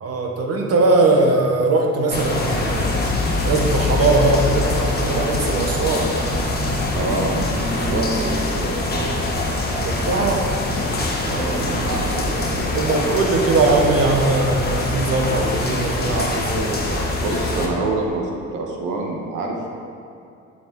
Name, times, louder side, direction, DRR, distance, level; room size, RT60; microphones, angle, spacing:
voice 1, 0.0-2.9 3.4-6.1 9.8-10.5 12.2-12.3 12.7-16.8, right 3 dB, 55° right, 1 dB, 1.1 m, -20 dB
sound 1, 2.1-17.7, left 2 dB, 30° left, 1.2 m, -23 dB
voice 2, 6.9-7.5 7.9-9.2 11.2-12.7 17.2-19.7, right 3 dB, 90° right, 0 dB, 1.2 m, -26 dB
7.5 x 6.2 x 3.8 m, 2.6 s
cardioid pair, 90°, 30 cm